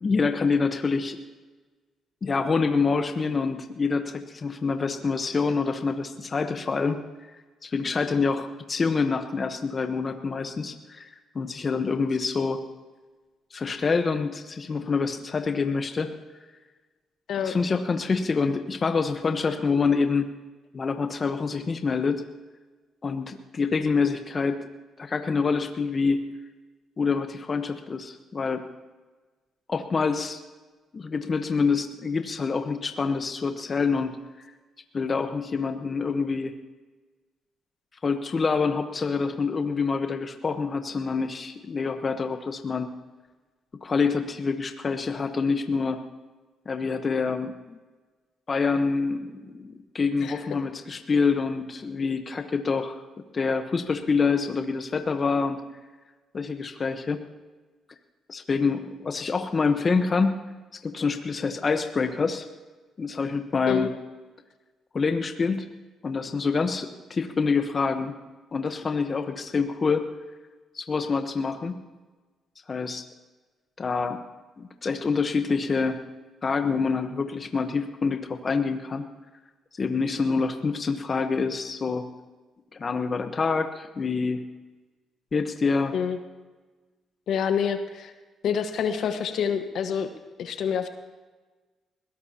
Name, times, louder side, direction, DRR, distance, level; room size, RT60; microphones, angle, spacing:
voice 1, 0.0-1.2 2.2-7.0 7.6-12.6 13.5-16.1 17.4-20.3 20.7-22.2 23.0-24.6 25.0-26.2 27.0-28.6 29.7-30.4 30.9-34.2 34.9-36.5 38.0-42.9 43.8-46.0 46.7-47.8 48.5-53.0 53.3-55.6 56.3-57.2 58.3-60.4 60.8-62.5 63.0-63.9 64.9-65.7 66.0-68.1 68.5-70.1 70.7-71.8 72.7-73.0 73.8-74.2 74.6-76.0 76.4-79.1 79.8-82.0 82.7-84.4 85.3-85.9, left 4 dB, 35° left, 6 dB, 1.1 m, -26 dB
voice 2, 87.3-88.1 88.4-90.1 90.4-90.9, left 7 dB, 70° left, 7 dB, 1.4 m, -27 dB
21.0 x 17.0 x 2.9 m, 1.3 s
cardioid pair, 90°, 0 cm